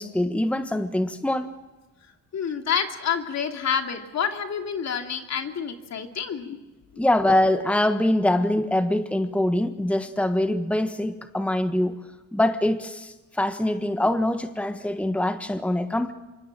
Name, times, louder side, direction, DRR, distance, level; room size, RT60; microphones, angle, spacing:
voice 1, 0.0-1.5 7.0-12.0 12.3-16.1, left 1 dB, 5° left, 9 dB, 1.4 m, -24 dB
voice 2, 2.3-6.6 6.9-7.0, left 7 dB, 60° left, 5 dB, 2.9 m, -28 dB
26.5 x 24.5 x 7.5 m, 1.2 s
cardioid pair, 90°, 30 cm